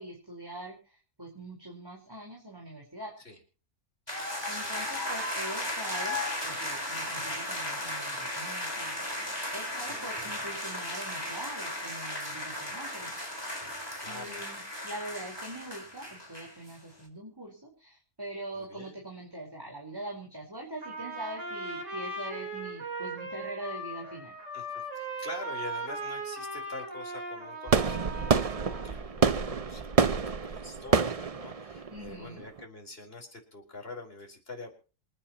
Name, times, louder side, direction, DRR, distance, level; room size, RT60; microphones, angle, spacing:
voice 1, 0.0-3.1 4.5-13.2 14.1-24.3 31.9-32.4, right 1 dB, 15° right, -1 dB, 4.5 m, -43 dB
sound 1, 4.1-16.8, left 1 dB, 20° left, 4.8 m, -35 dB
voice 2, 4.5-5.2 9.8-10.0 14.0-14.4 18.5-19.0 24.5-34.7, left 2 dB, 50° left, 2 dB, 4.7 m, -45 dB
Trumpet, 20.8-28.9, right 2 dB, 65° right, 4.6 m, -38 dB
sound 2, 27.7-32.6, right 5 dB, 35° right, 0.7 m, -27 dB
27.5 x 9.8 x 3.0 m, 0.38 s
omnidirectional pair, 1.4 m